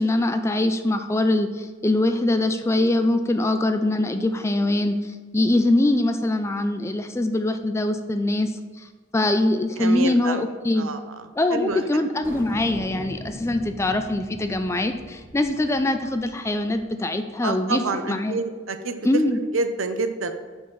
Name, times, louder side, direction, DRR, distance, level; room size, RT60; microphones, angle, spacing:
voice 1, 0.0-8.5 9.1-10.9 11.4-18.4 19.0-19.4, left 1 dB, 15° left, 7 dB, 0.4 m, -23 dB
voice 2, 9.8-11.0 11.5-11.8 17.4-19.0 19.5-20.3, right 3 dB, 85° right, 9 dB, 0.6 m, -28 dB
sound 1, 12.2-16.9, equal, 10° right, 1.6 m, -40 dB
5.5 x 5.3 x 5.9 m, 1.4 s
head